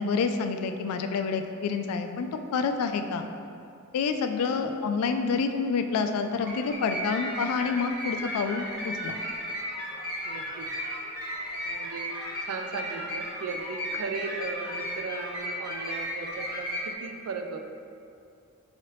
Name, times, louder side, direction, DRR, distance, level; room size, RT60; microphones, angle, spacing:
voice 1, 0.0-3.3 3.9-9.2, left 5 dB, 85° left, 9 dB, 0.3 m, -28 dB
voice 2, 4.6-4.9 10.2-10.9 11.6-12.1 12.4-17.6, right 4 dB, 80° right, 5 dB, 0.4 m, -37 dB
sound 1, 6.4-16.9, equal, 50° right, 1.2 m, -35 dB
4.7 x 3.1 x 3.0 m, 2.5 s
head